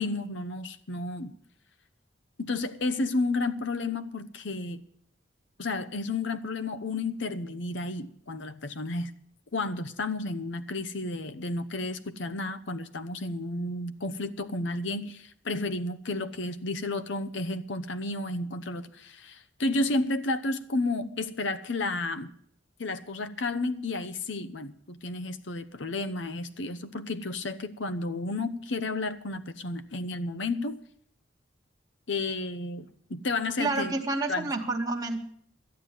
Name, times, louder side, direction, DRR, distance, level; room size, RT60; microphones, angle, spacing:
voice 1, 0.0-1.3 2.4-4.8 5.6-9.1 9.5-22.3 22.8-30.8 32.1-33.9 34.3-34.5, left 2 dB, 65° left, 10 dB, 0.9 m, -32 dB
voice 2, 33.6-35.2, right 2 dB, 20° right, 0 dB, 1.2 m, -29 dB
12.5 x 9.3 x 8.1 m, 0.65 s
head